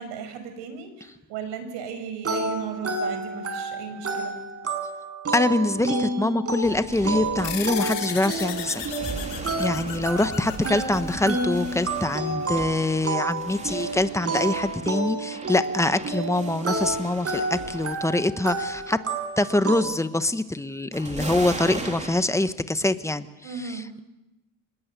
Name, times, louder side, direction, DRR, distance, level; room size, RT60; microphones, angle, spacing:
voice 1, 0.0-4.3 9.8-9.9 23.4-23.9, right 6 dB, 80° right, 8 dB, 5.9 m, -36 dB
sound 1, 2.2-19.8, right 2 dB, 35° right, 5.9 m, -30 dB
voice 2, 5.3-8.9 9.6-19.0 19.4-23.3 23.6-24.0, left 2 dB, 5° left, 12 dB, 1.2 m, -24 dB
sound 2, 6.6-18.2 18.5-19.0 20.9-22.3, right 2 dB, 15° right, 3.5 m, -38 dB
sound 3, 7.4-12.3, left 11 dB, 80° left, 4.2 m, -36 dB
26.0 x 21.0 x 8.3 m, 0.97 s
cardioid pair, 110°, 41 cm